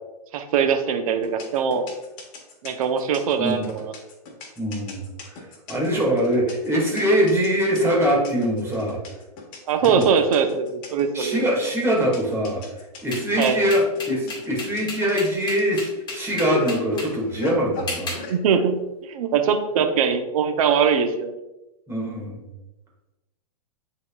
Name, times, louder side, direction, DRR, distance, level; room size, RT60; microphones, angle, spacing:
voice 1, 0.3-1.9 2.6-3.9 9.7-11.4 13.4-13.6 18.3-18.8 19.1-21.3, right 6 dB, 60° right, 6 dB, 0.9 m, -21 dB
sound 1, 1.2-18.4, left 4 dB, 40° left, 1.6 m, -36 dB
voice 2, 4.6-5.1 5.7-9.0 9.8-10.1 11.1-12.6 13.0-18.2 21.9-22.4, equal, 10° right, -3 dB, 2.1 m, -23 dB
sound 2, 13.1-17.1 17.9-18.2, left 3 dB, 20° left, 1.9 m, -32 dB
9.9 x 4.0 x 2.4 m, 0.97 s
hypercardioid pair, 115°, 21 cm